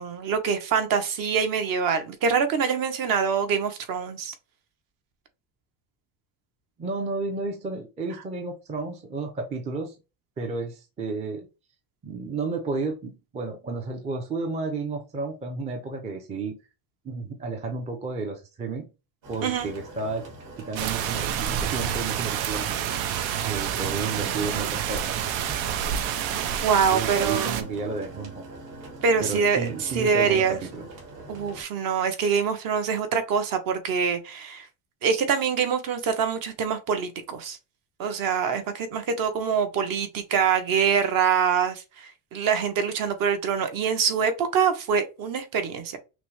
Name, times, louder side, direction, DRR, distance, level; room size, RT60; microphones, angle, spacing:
voice 1, 0.0-4.3 19.4-19.7 26.6-27.7 29.0-30.6 31.3-34.7 35.0-37.6 38.0-46.0, right 6 dB, 50° right, 0.9 m, -25 dB
voice 2, 6.8-9.9 10.4-11.5 12.0-16.6 17.0-18.9 19.3-20.3 20.6-22.7 23.5-25.8 26.9-28.4 29.2-30.9, right 3 dB, 15° right, 0.5 m, -32 dB
sound 1, 19.2-31.6, right 2 dB, 65° right, 2.4 m, -43 dB
sound 2, 20.8-27.6, right 10 dB, 85° right, 0.8 m, -28 dB
5.9 x 2.1 x 3.2 m
cardioid pair, 175°, 45 cm